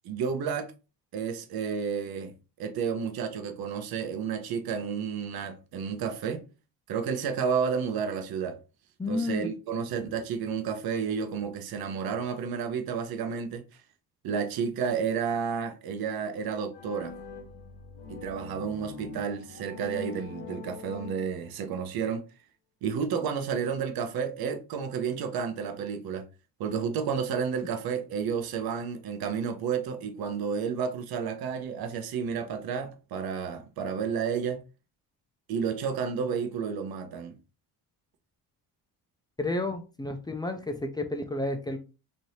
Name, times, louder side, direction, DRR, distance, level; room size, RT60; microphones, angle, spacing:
voice 1, 0.0-0.7 1.1-2.3 2.6-6.4 6.9-8.6 9.1-13.6 14.2-17.1 18.1-22.2 22.8-26.3 26.6-34.6 35.5-37.3, right 6 dB, 60° right, 0.7 m, -31 dB
voice 2, 9.0-9.5 39.4-41.8, left 2 dB, 10° left, 0.5 m, -31 dB
sound 1, 16.7-21.7, left 5 dB, 70° left, 1.2 m, -43 dB
3.1 x 2.7 x 2.7 m
cardioid pair, 95°, 40 cm